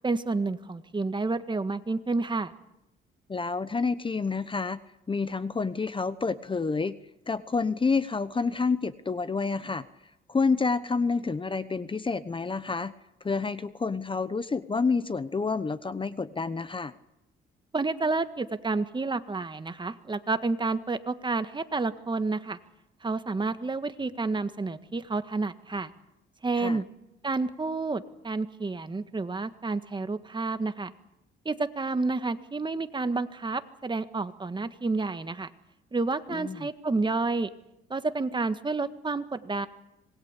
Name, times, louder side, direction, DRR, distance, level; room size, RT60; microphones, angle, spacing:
voice 1, 0.0-2.5 17.7-22.6 23.0-25.9 26.4-26.9 27.2-30.9 31.5-35.5 35.9-37.5 37.9-39.7, right 3 dB, 25° right, 10 dB, 1.7 m, -30 dB
voice 2, 3.3-4.8 5.1-6.9 7.3-9.9 10.3-12.9 13.2-16.9 26.5-26.8 36.3-36.7, left 4 dB, 25° left, 14 dB, 1.0 m, -28 dB
26.5 x 21.0 x 8.4 m, 0.87 s
cardioid pair, 90°, 20 cm